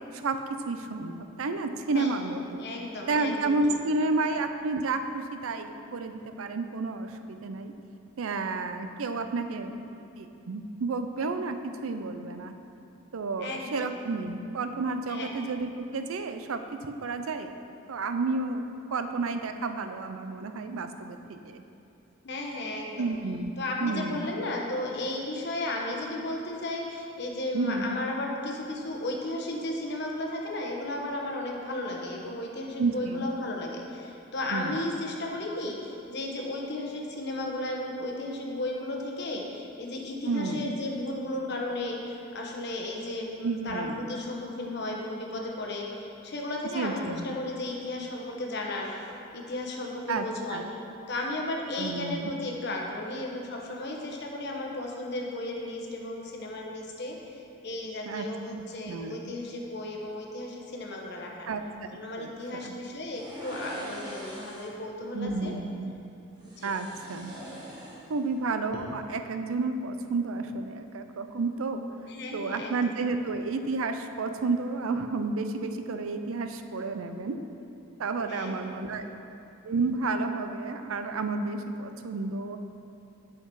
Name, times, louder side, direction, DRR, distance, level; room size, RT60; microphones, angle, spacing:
voice 1, 0.7-2.7 3.1-7.7 8.2-9.8 10.2-12.6 13.1-17.5 17.9-21.6 23.0-23.5 23.8-24.3 27.5-27.9 32.8-33.3 34.5-34.8 40.2-40.8 43.4-44.2 46.7-47.3 50.1-50.7 51.8-52.3 58.1-58.3 58.5-59.3 61.5-61.9 62.2-62.8 65.1-65.9 66.6-67.3 68.1-71.8 72.3-77.4 78.0-79.1 79.6-82.6, right 3 dB, 80° right, 8 dB, 0.5 m, -31 dB
voice 2, 1.9-3.8 13.4-13.9 15.1-15.3 22.2-23.1 23.6-50.7 51.1-61.5 61.9-65.5 66.4-66.7 72.1-72.9 78.3-79.2, left 1 dB, 55° left, 0 dB, 1.0 m, -34 dB
sound 1, 63.1-64.8 66.4-68.3 68.6-68.8, right 1 dB, 20° right, 1.2 m, -42 dB
8.0 x 5.9 x 4.7 m, 2.7 s
head